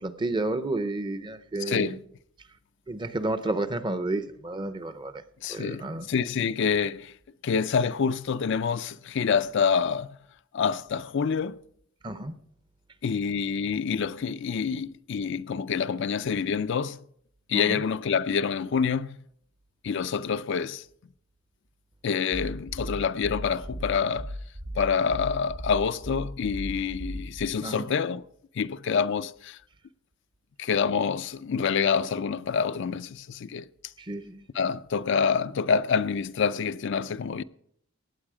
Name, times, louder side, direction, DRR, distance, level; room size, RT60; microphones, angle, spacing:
voice 1, 0.0-2.0 2.9-5.2 5.5-6.1 12.0-12.4 17.5-17.8 27.6-27.9 34.0-34.5, right 2 dB, 25° right, 0.6 m, -31 dB
voice 2, 1.7-2.0 5.4-7.1 7.4-10.2 10.5-11.6 13.0-17.0 17.5-19.2 19.8-20.9 22.0-24.3 24.8-28.2 28.5-29.6 30.6-33.7 34.5-37.4, left 6 dB, 60° left, 0.4 m, -27 dB
sound 1, 22.3-27.5, equal, 55° right, 1.5 m, -36 dB
17.5 x 8.1 x 4.9 m
head